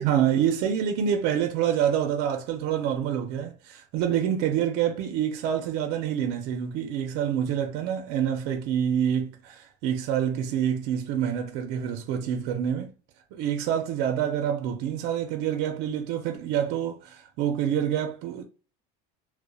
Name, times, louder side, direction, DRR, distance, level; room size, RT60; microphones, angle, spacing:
voice 1, 0.0-12.9 13.3-18.4, right 9 dB, 65° right, 0.5 m, -27 dB
2.7 x 2.0 x 2.3 m
supercardioid pair, 115°, 19 cm